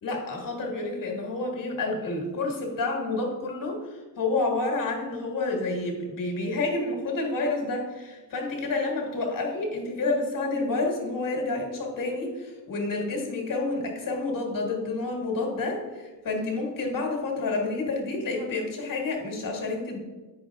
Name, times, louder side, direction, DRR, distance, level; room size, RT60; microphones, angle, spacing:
voice 1, 0.0-20.0, left 3 dB, 45° left, 1 dB, 1.7 m, -29 dB
8.5 x 5.5 x 3.6 m, 1.3 s
cardioid pair, 155°, 44 cm